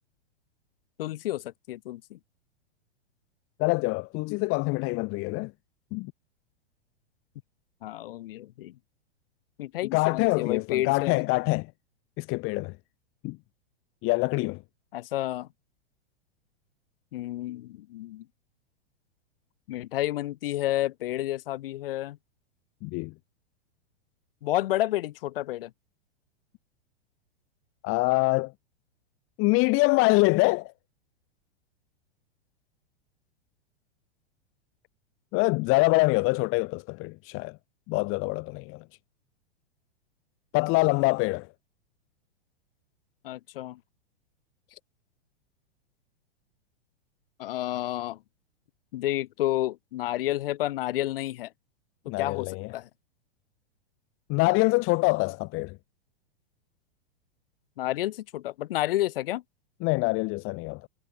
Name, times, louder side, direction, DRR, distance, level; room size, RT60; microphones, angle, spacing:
voice 1, 1.0-2.2 7.8-8.8 9.6-11.3 14.9-15.5 17.1-18.3 19.7-22.2 24.4-25.7 43.2-43.8 47.4-48.2 48.9-51.5 52.1-52.9 57.8-59.4, left 15 dB, 60° left, 5.7 m, -30 dB
voice 2, 3.6-5.5 5.9-6.1 9.8-11.7 12.2-12.7 13.2-13.4 14.0-14.6 22.8-23.1 27.8-28.5 29.4-30.7 35.3-37.6 37.9-38.8 40.5-41.5 52.1-52.7 54.3-55.8 59.8-60.9, left 26 dB, 40° left, 2.5 m, -25 dB
hypercardioid pair, 105°, 32 cm